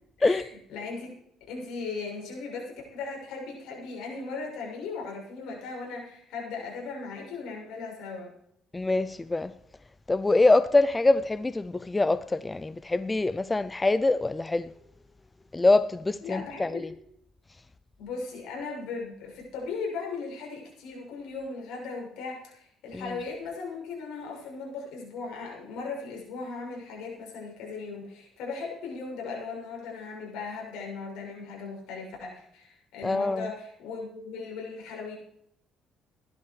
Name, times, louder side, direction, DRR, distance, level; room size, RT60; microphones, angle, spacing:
voice 1, 0.2-1.2 1.5-8.3 16.2-16.8 18.0-35.2, left 4 dB, 85° left, 6.8 m, -38 dB
voice 2, 8.7-9.5 10.1-14.7 15.5-16.8 22.9-23.1 33.0-33.5, left 2 dB, 15° left, 0.4 m, -24 dB
17.5 x 11.5 x 4.8 m
cardioid pair, 125°, 0 cm